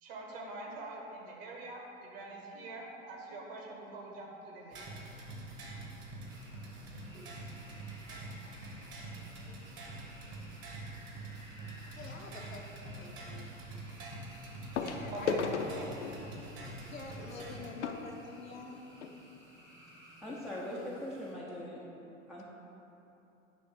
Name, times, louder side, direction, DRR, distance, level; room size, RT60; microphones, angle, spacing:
voice 1, 0.0-4.8 15.1-16.3, right 2 dB, 50° right, -1 dB, 1.5 m, -45 dB
sound 1, 4.7-17.7, right 2 dB, 30° right, 1.1 m, -46 dB
sound 2, 6.3-21.3, equal, 80° right, 1.5 m, -57 dB
sound 3, 11.2-11.5 13.1-13.2 14.7-19.2 19.9-20.0 20.2-20.4 20.9-21.0, left 5 dB, 65° left, 0.6 m, -38 dB
voice 2, 11.9-13.5 14.8-16.1 16.8-18.8, left 3 dB, 85° left, 0 dB, 0.9 m, -47 dB
voice 3, 20.2-21.8 22.3-22.4, left 1 dB, ahead, -6 dB, 0.4 m, -41 dB
9.4 x 3.2 x 5.6 m, 2.9 s
figure-of-eight pair, 90°, 39 cm